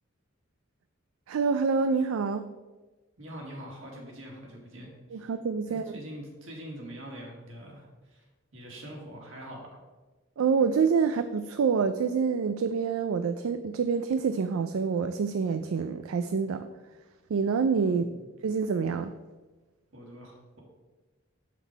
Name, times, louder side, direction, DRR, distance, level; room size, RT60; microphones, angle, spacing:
voice 1, 1.3-2.4 5.1-6.0 10.4-16.7 17.3-18.1 18.4-19.1, right 5 dB, 80° right, 10 dB, 0.4 m, -27 dB
voice 2, 3.2-5.3 5.6-8.3 8.5-9.8 17.9-18.3 19.9-20.6, equal, 65° right, -1 dB, 2.2 m, -44 dB
7.3 x 5.9 x 4.5 m, 1.2 s
head